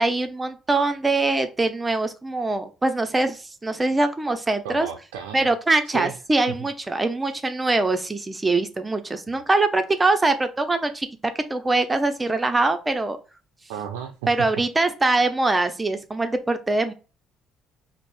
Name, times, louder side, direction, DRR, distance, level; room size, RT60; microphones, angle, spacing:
voice 1, 0.0-4.9 5.3-11.1 11.3-13.2 14.3-16.9, right 2 dB, 20° right, 0.6 m, -23 dB
voice 2, 4.6-5.4 5.9-6.1 6.5-6.7 9.3-9.4 13.7-14.5, right 9 dB, 85° right, 0.3 m, -33 dB
5.2 x 2.1 x 2.6 m
hypercardioid pair, 60°, 0 cm